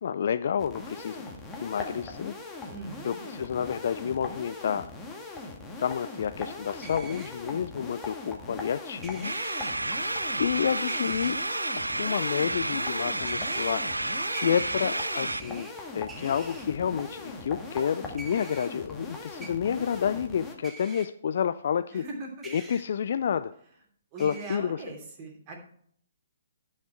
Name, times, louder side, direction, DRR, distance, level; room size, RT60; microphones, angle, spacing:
voice 1, 0.0-1.2 1.6-2.3 3.0-4.9 5.8-9.3 10.4-11.4 11.8-13.8 14.3-15.7 15.9-22.0 22.5-23.5 24.2-24.8, left 8 dB, 50° left, 11 dB, 0.3 m, -29 dB
sound 1, 0.6-20.5, left 3 dB, 10° left, 1.6 m, -41 dB
voice 2, 2.7-3.3 21.9-22.3 24.1-25.6, right 2 dB, 30° right, 0 dB, 2.9 m, -40 dB
sound 2, 6.8-7.3 9.0-9.7 10.9-11.3 13.3-13.7 14.3-15.7 16.1-16.6 18.2-18.7 19.4-19.5 20.6-21.1 22.4-22.8 24.2-24.6, right 3 dB, 10° right, 1.3 m, -45 dB
sound 3, 9.2-15.4, right 2 dB, 85° right, 0.3 m, -31 dB
11.5 x 6.4 x 4.4 m, 0.63 s
figure-of-eight pair, 125°, 0 cm